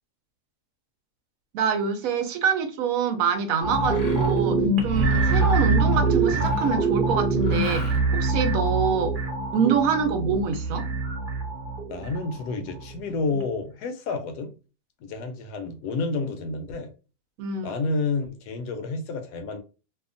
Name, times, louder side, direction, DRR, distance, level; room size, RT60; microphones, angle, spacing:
voice 1, 1.5-9.1 9.5-10.9 17.4-17.8, right 6 dB, 70° right, 0.9 m, -25 dB
sound 1, 3.6-12.9 13.3-13.4, right 3 dB, 50° right, 0.6 m, -24 dB
Mechanisms, 3.7-4.4 4.9-6.9 7.4-8.3, left 1 dB, 60° left, 0.4 m, -39 dB
voice 2, 11.9-14.5 15.0-16.9 17.6-19.6, left 3 dB, 85° left, 1.2 m, -30 dB
2.7 x 2.4 x 2.4 m
omnidirectional pair, 1.7 m